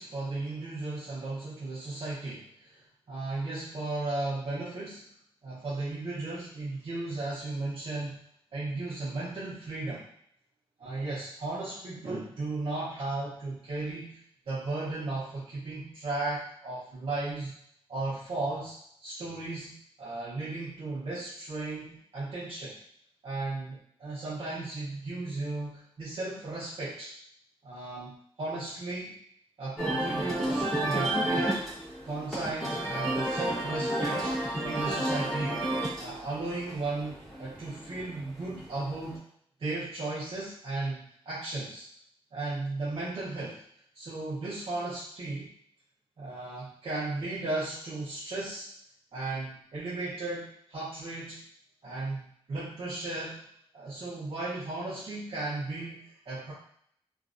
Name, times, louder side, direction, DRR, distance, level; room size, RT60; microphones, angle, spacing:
voice 1, 0.0-2.7 3.1-5.0 5.4-8.2 8.5-10.0 10.8-17.5 17.9-22.8 23.2-27.1 27.6-29.2 29.6-31.6 32.0-34.3 34.6-35.7 36.0-39.3 39.6-41.9 42.3-43.6 43.9-45.5 46.2-48.7 49.1-51.4 51.8-53.5 53.7-56.5, right 2 dB, 60° right, -9 dB, 0.7 m, -35 dB
sound 1, 29.8-39.2, right 1 dB, ahead, 0.9 m, -32 dB
2.4 x 2.0 x 2.5 m, 0.66 s
wide cardioid pair, 140°, 10 cm